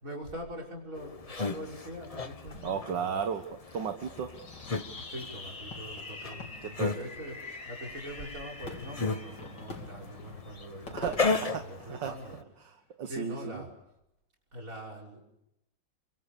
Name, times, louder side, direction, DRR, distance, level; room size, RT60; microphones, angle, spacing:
voice 1, 0.0-3.2 4.9-12.4 13.0-13.7 14.5-15.2, equal, 45° right, 2 dB, 6.1 m, -43 dB
sound 1, 1.0-12.4, left 4 dB, 30° left, 0.7 m, -36 dB
voice 2, 2.6-3.4 3.7-4.4 6.6-7.0 10.9-13.6, right 7 dB, 70° right, 7 dB, 2.0 m, -35 dB
Fireworks, 4.3-12.5, left 3 dB, 70° left, 3.8 m, -44 dB
29.5 x 24.5 x 6.9 m, 0.85 s
omnidirectional pair, 2.0 m